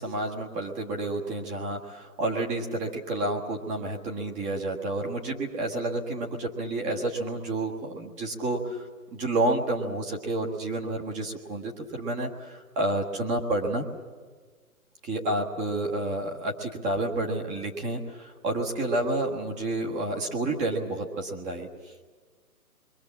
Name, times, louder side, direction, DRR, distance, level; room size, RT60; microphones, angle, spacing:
voice 1, 0.0-8.9 9.1-13.9 15.0-21.9, right 2 dB, 15° right, 0 dB, 1.6 m, -30 dB
27.5 x 22.5 x 7.3 m, 1.5 s
figure-of-eight pair, 140°, 44 cm